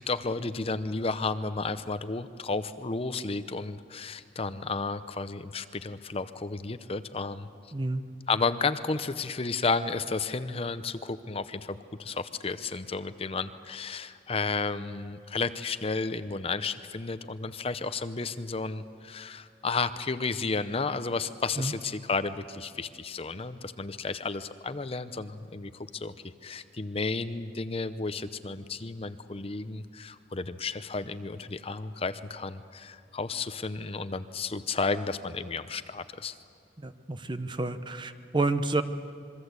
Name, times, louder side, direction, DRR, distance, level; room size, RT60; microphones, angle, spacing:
voice 1, 0.0-7.5 8.3-26.1 26.4-36.4, left 4 dB, 30° left, 12 dB, 0.7 m, -32 dB
voice 2, 7.7-8.0 21.6-21.7 36.8-38.8, right 2 dB, 25° right, 10 dB, 0.9 m, -29 dB
26.5 x 23.0 x 8.2 m, 2.3 s
head